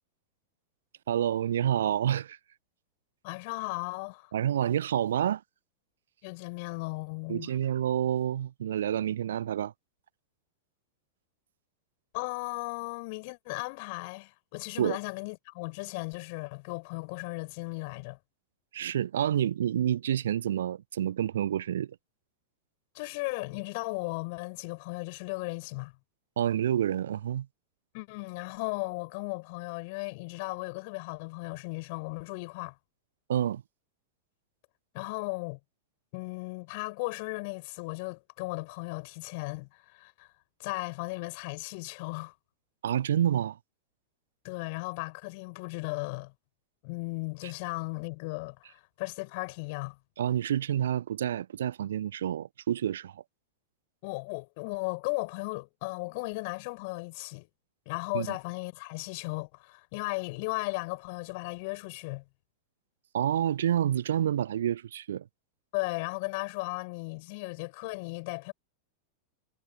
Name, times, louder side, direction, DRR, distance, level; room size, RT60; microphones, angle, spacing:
voice 1, 1.1-2.4 4.3-5.4 7.3-9.7 14.8-15.0 18.7-22.0 26.4-27.5 33.3-33.6 42.8-43.6 50.2-53.2 58.1-58.3 63.1-65.3, right 10 dB, 60° right, 0.9 m, -28 dB
voice 2, 3.2-4.3 6.2-7.5 12.1-18.2 22.9-25.9 27.9-32.8 34.9-35.6 36.1-40.3 40.6-42.3 44.4-46.3 46.8-50.0 54.0-57.5 57.9-62.2 65.7-68.5, left 28 dB, 45° left, 7.6 m, -36 dB
figure-of-eight pair, 90°, 0 cm